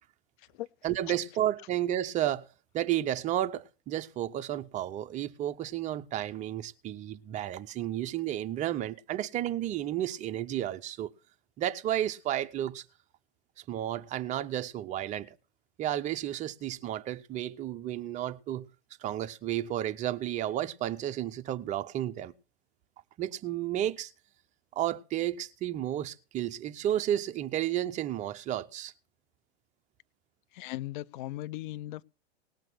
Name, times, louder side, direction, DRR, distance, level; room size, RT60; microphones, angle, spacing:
voice 1, 0.8-2.4 2.7-11.1 11.6-12.8 13.7-15.4 15.8-18.7 19.0-22.3 23.2-24.1 24.7-28.9, right 12 dB, 20° right, 0.7 m, -32 dB
voice 2, 30.5-32.0, left 16 dB, 50° left, 0.5 m, -38 dB
19.0 x 6.5 x 6.2 m
hypercardioid pair, 135°, 32 cm